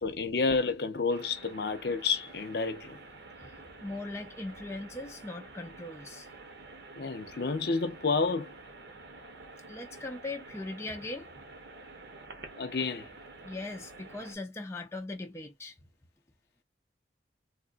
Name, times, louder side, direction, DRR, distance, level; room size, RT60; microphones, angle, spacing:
voice 1, 0.0-3.0 7.0-8.5 12.6-13.1, left 4 dB, 60° left, 0.7 m, -30 dB
sound 1, 1.1-14.4, right 3 dB, 65° right, 0.9 m, -49 dB
voice 2, 3.4-6.3 9.7-11.3 13.4-15.8, left 2 dB, 15° left, 0.5 m, -40 dB
3.6 x 2.3 x 2.4 m
head